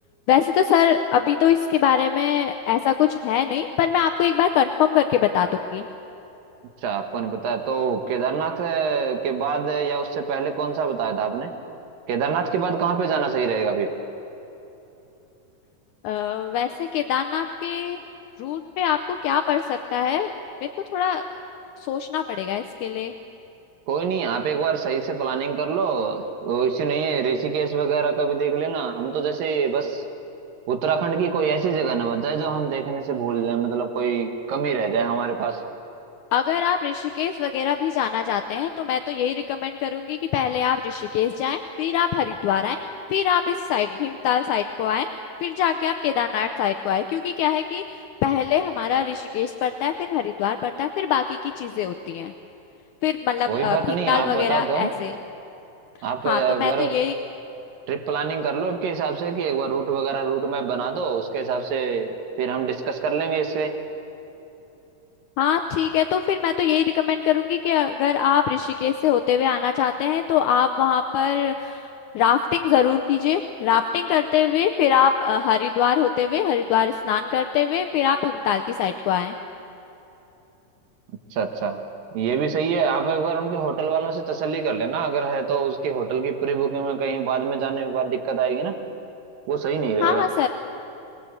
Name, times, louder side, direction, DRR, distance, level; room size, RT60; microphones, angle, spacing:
voice 1, 0.3-5.9 16.0-18.0 18.4-20.3 20.6-21.2 21.9-23.1 36.3-42.8 43.1-45.1 45.4-47.8 48.2-52.3 53.0-55.2 56.3-57.1 65.4-79.4 90.0-90.5, left 9 dB, 75° left, 7 dB, 2.0 m, -23 dB
voice 2, 6.8-11.5 12.1-13.9 23.9-30.0 30.7-35.6 53.5-54.9 56.0-56.9 57.9-63.7 81.3-81.8 82.1-88.7 89.5-90.2, right 6 dB, 85° right, 5 dB, 3.2 m, -25 dB
25.5 x 20.5 x 7.9 m, 3.0 s
omnidirectional pair, 3.9 m